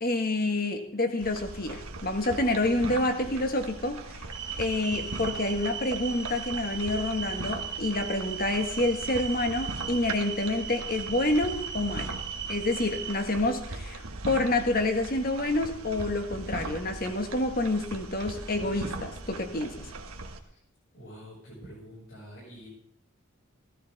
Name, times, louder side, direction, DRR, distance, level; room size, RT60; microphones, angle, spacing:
voice 1, 0.0-4.3 4.6-12.2 12.5-19.9, left 2 dB, 40° left, 6 dB, 1.5 m, -28 dB
sound 1, 1.2-20.4, right 2 dB, 80° right, 1.4 m, -40 dB
sound 2, 4.3-13.2, right 7 dB, 20° right, 1.3 m, -38 dB
voice 2, 20.9-22.7, equal, 65° left, -10 dB, 8.0 m, -47 dB
16.0 x 13.5 x 4.1 m, 0.67 s
head